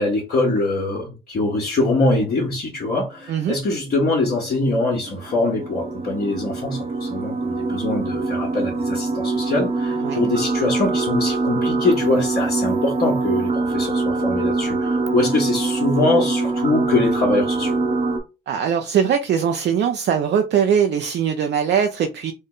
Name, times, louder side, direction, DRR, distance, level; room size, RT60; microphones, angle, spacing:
voice 1, 0.0-17.8, left 2 dB, 50° left, 1.4 m, -23 dB
sound 1, 3.2-18.2, right 3 dB, 30° right, 0.9 m, -24 dB
voice 2, 18.5-22.3, right 8 dB, 60° right, 0.5 m, -21 dB
3.7 x 2.1 x 3.9 m
cardioid pair, 90°, 20 cm